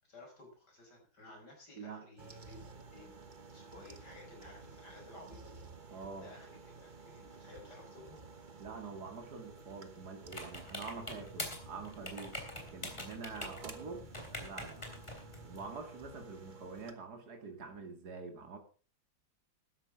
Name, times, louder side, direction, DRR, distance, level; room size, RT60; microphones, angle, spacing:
voice 1, 0.0-3.1 3.5-8.3, left 2 dB, 55° left, 1 dB, 5.9 m, -55 dB
sound 1, 2.2-16.9, right 4 dB, 30° right, 1.1 m, -53 dB
voice 2, 5.9-6.3 8.6-15.0 15.4-18.6, right 4 dB, 55° right, 5 dB, 2.8 m, -46 dB
sound 2, 10.2-15.7, left 1 dB, 15° left, 3.0 m, -45 dB
13.0 x 10.5 x 4.8 m, 0.39 s
omnidirectional pair, 2.1 m